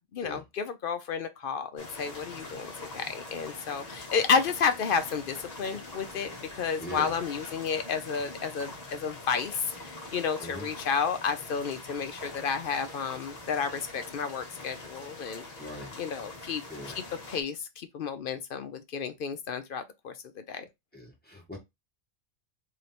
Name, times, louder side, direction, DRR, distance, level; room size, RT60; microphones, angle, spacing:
voice 1, 0.0-15.4 16.0-16.6 16.9-20.7, left 6 dB, 60° left, 0.6 m, -31 dB
sound 1, 1.8-17.4, left 2 dB, 35° left, 1.0 m, -44 dB
voice 2, 6.8-7.2 10.4-10.7 15.6-15.9 16.7-17.0 20.9-21.6, left 1 dB, 10° left, 1.6 m, -41 dB
3.2 x 2.8 x 4.1 m
omnidirectional pair, 1.3 m